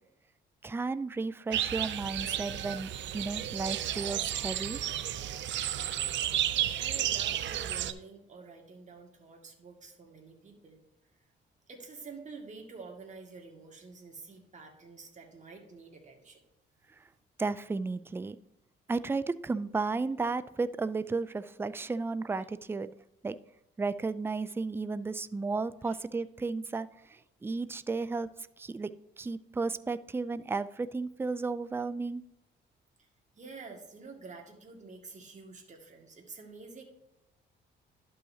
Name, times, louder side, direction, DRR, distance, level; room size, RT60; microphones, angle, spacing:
voice 1, 0.6-4.8 17.4-18.4 18.9-22.9 23.2-23.4 23.8-28.3 28.6-28.9 29.2-32.2, right 3 dB, 10° right, 14 dB, 0.3 m, -33 dB
sound 1, 1.5-7.9, right 11 dB, 70° right, 0.5 m, -32 dB
voice 2, 6.8-10.8 11.7-16.4 25.8-26.0 33.0-33.1 33.4-36.8, right 4 dB, 35° right, 1 dB, 2.0 m, -48 dB
12.0 x 5.5 x 2.8 m, 0.90 s
cardioid pair, 90°, 20 cm